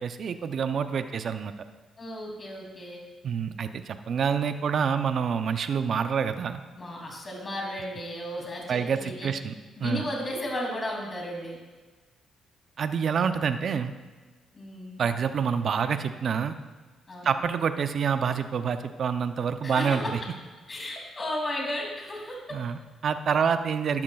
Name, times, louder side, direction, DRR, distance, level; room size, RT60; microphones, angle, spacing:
voice 1, 0.0-1.5 3.2-6.6 8.7-9.5 9.8-10.1 12.8-13.9 15.0-16.5 17.2-20.2 22.5-24.0, right 6 dB, 55° right, 9 dB, 0.6 m, -27 dB
voice 2, 2.0-3.0 6.8-9.3 9.8-11.6 14.5-15.0 17.1-17.3 19.6-20.2 20.7-22.4, left 1 dB, 30° left, -1 dB, 2.8 m, -34 dB
12.5 x 11.0 x 2.4 m, 1.3 s
cardioid pair, 90°, 0 cm